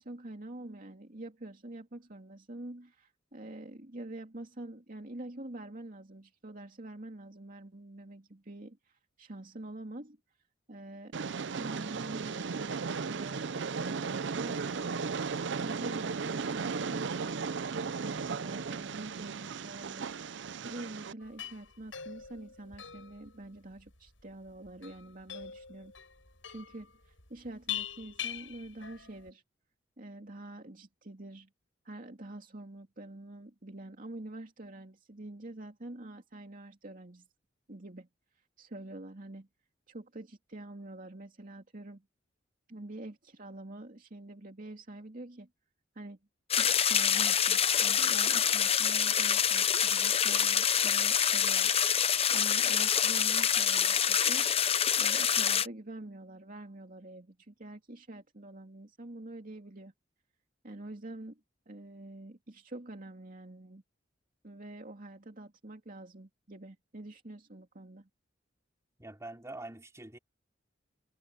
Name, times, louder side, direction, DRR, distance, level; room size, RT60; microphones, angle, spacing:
voice 1, 0.0-10.2 10.7-11.2 11.5-20.1 20.6-25.9 26.5-29.4 30.0-31.5 31.8-37.3 37.7-38.1 38.6-39.5 39.9-42.0 42.7-45.5 45.9-46.2 46.6-51.7 52.3-54.5 55.0-59.9 60.6-61.4 61.7-63.8 64.4-68.1, right 1 dB, 45° right, 2.6 m, -46 dB
Train, 11.1-21.1, right 5 dB, 65° right, 0.6 m, -35 dB
sound 1, 21.2-29.3, left 10 dB, 85° left, 7.5 m, -43 dB
sound 2, 46.5-55.7, left 8 dB, 30° left, 0.8 m, -26 dB
voice 2, 69.0-70.2, right 2 dB, 15° right, 4.2 m, -44 dB
head